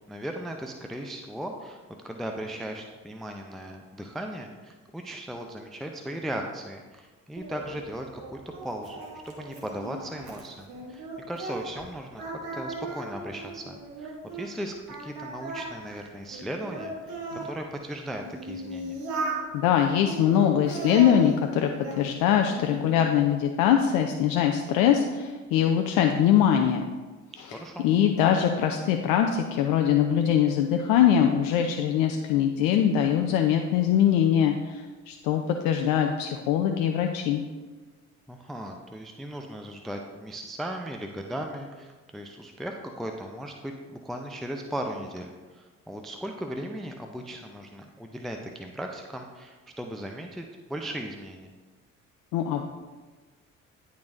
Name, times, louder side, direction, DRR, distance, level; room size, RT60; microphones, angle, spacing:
voice 1, 0.0-12.3 12.5-17.2 17.4-19.0 27.5-27.9 38.3-51.5, right 1 dB, ahead, 3 dB, 0.5 m, -37 dB
Singing, 7.4-11.9 12.2-14.5 14.9-17.5 18.1-19.4 20.0-22.0 22.4-23.0, right 2 dB, 55° right, 1.4 m, -37 dB
voice 2, 19.5-21.7 22.0-26.8 27.8-37.4 52.3-52.6, left 9 dB, 55° left, 4 dB, 0.6 m, -22 dB
10.5 x 4.1 x 2.6 m, 1.3 s
figure-of-eight pair, 50°, 41 cm